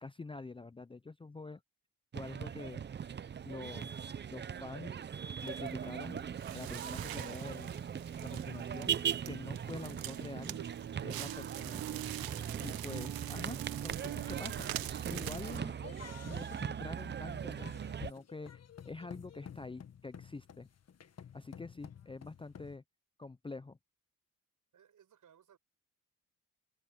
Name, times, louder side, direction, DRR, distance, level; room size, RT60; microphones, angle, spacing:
voice 1, 0.0-1.6 2.1-2.8 3.4-4.1 4.3-4.9 5.4-6.2 6.5-7.7 8.2-10.6 11.0-11.8 12.6-15.7 16.2-17.8 18.0-20.7 21.3-22.8 23.2-23.8, left 3 dB, 15° left, 0.5 m, -46 dB
sound 1, 2.1-18.1, right 8 dB, 30° right, 0.5 m, -40 dB
Crackle, 5.4-15.6, right 14 dB, 90° right, 1.0 m, -44 dB
sound 2, 15.4-22.8, left 8 dB, 45° left, 1.6 m, -52 dB
voice 2, 24.7-25.6, right 9 dB, 60° right, 7.1 m, -63 dB
cardioid pair, 105°, 34 cm